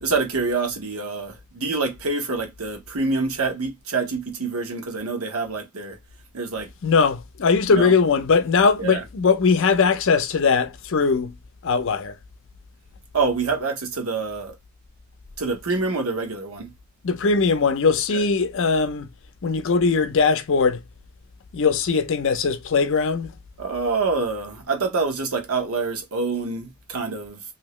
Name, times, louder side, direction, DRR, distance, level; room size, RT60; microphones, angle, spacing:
voice 1, 0.0-6.0 6.3-6.7 7.7-7.9 8.8-9.0 13.1-14.6 15.4-16.7 18.1-18.2 23.6-27.4, right 4 dB, 80° right, 1.0 m, -26 dB
voice 2, 6.8-11.3 11.6-12.2 17.0-19.1 19.4-20.8 21.5-23.3, left 5 dB, 60° left, 0.5 m, -20 dB
2.8 x 2.7 x 3.0 m
head